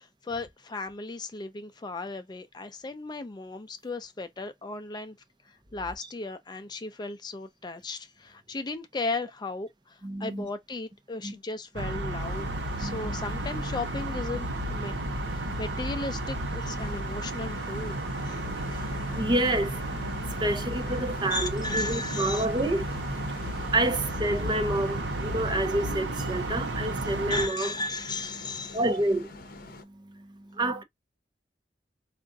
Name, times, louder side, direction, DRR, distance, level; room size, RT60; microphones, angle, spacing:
voice 1, 0.0-5.2 5.7-14.9 15.3-18.4 18.7-18.9 21.3-22.5 27.0-28.8, left 3 dB, 25° left, 0.4 m, -36 dB
voice 2, 10.0-10.5 11.2-11.3 12.8-13.1 14.9-15.0 15.3-15.6 18.3-27.7 28.7-30.8, right 1 dB, 25° right, 0.7 m, -30 dB
sound 1, 11.8-27.5, right 1 dB, 80° right, 0.8 m, -33 dB
sound 2, 12.2-29.8, left 3 dB, 55° left, 0.8 m, -46 dB
4.8 x 2.5 x 2.6 m
head